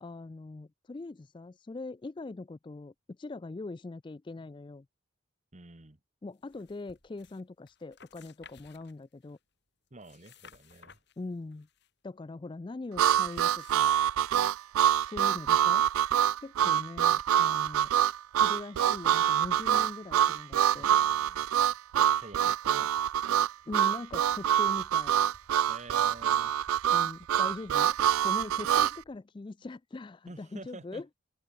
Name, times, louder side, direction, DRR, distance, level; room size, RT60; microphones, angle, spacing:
voice 1, 0.0-4.9 6.2-9.4 11.2-11.7 12.0-13.9 15.0-15.8 16.4-17.9 18.4-20.9 23.7-25.2 26.9-28.0 28.2-31.1, left 3 dB, 20° left, 0.3 m, -41 dB
voice 2, 5.5-6.0 9.9-11.0 16.6-16.8 20.7-21.5 21.9-23.0 25.7-26.5 30.3-31.0, right 2 dB, 35° right, 1.4 m, -49 dB
sound 1, 6.4-7.4 7.7-9.4 9.9-11.9 13.0-13.9, left 6 dB, 50° left, 7.9 m, -57 dB
Harmonica, 13.0-29.0, right 10 dB, 85° right, 0.3 m, -25 dB
sound 2, 24.1-29.2, equal, 70° left, 6.1 m, -63 dB
open air
head